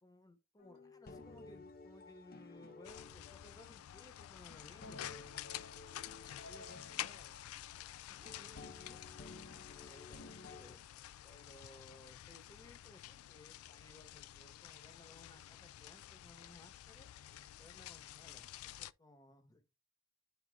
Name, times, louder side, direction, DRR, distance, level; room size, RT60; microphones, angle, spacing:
voice 1, 0.0-7.4 9.7-10.8 11.2-17.1 17.6-19.7, left 1 dB, 15° left, 1.1 m, -61 dB
sound 1, 0.6-10.8, left 3 dB, 45° left, 0.7 m, -54 dB
sound 2, 2.8-18.9, left 13 dB, 85° left, 0.3 m, -50 dB
voice 2, 6.3-7.2 8.1-9.1 18.1-18.4, right 1 dB, 10° right, 0.8 m, -67 dB
11.0 x 4.2 x 2.3 m
head